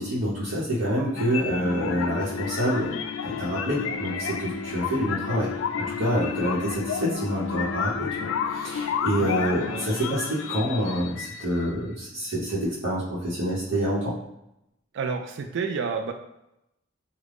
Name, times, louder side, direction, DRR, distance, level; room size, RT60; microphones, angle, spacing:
voice 1, 0.0-2.9 3.2-5.5 5.9-14.1, equal, 85° right, -8 dB, 0.9 m, -27 dB
sound 1, 1.2-11.8, left 7 dB, 90° left, 0.3 m, -31 dB
voice 2, 14.9-16.1, right 5 dB, 65° right, 4 dB, 0.3 m, -30 dB
3.4 x 2.2 x 3.6 m, 0.85 s
head